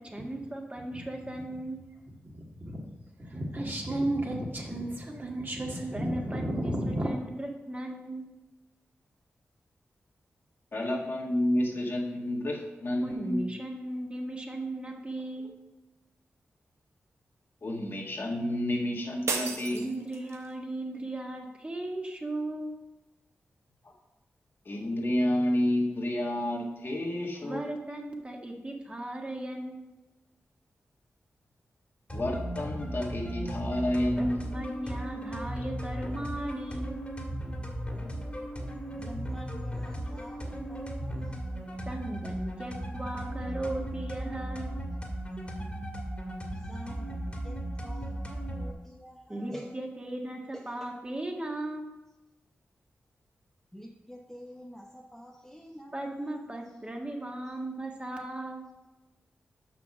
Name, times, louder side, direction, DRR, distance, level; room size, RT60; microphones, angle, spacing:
voice 1, 0.0-1.8 5.9-8.2 13.0-15.5 19.7-22.8 27.4-29.8 34.2-37.0 41.9-44.8 49.3-51.9 55.9-58.6, right 1 dB, 25° right, 1 dB, 1.7 m, -37 dB
voice 2, 2.2-2.8 3.2-7.1, right 1 dB, 45° right, -1 dB, 2.0 m, -32 dB
voice 3, 10.7-13.5 17.6-19.9 24.7-27.6 32.1-34.5, left 1 dB, 50° left, -1 dB, 1.6 m, -30 dB
sound 1, 19.3-20.5, right 4 dB, 75° right, 0.9 m, -34 dB
sound 2, 32.1-48.7, right 1 dB, 25° left, 1.9 m, -36 dB
voice 4, 38.9-41.7 46.7-49.7 53.7-56.4, equal, 5° left, 0 dB, 0.8 m, -47 dB
6.0 x 5.9 x 6.1 m, 1.1 s
cardioid pair, 45°, 5 cm